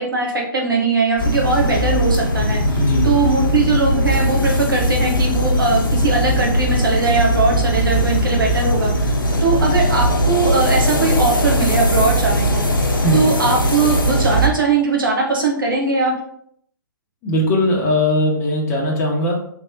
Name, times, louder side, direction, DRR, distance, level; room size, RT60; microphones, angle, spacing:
voice 1, 0.0-2.8 3.0-12.6 13.1-16.2, right 3 dB, 75° right, -1 dB, 1.2 m, -20 dB
sound 1, 1.2-14.5, equal, 75° left, 0.8 m, -19 dB
sound 2, 1.2-12.0, left 2 dB, ahead, 1.3 m, -28 dB
voice 2, 13.0-13.3 17.2-19.4, left 1 dB, 20° left, -1 dB, 0.9 m, -19 dB
3.4 x 3.2 x 2.8 m, 0.68 s
figure-of-eight pair, 125°, 11 cm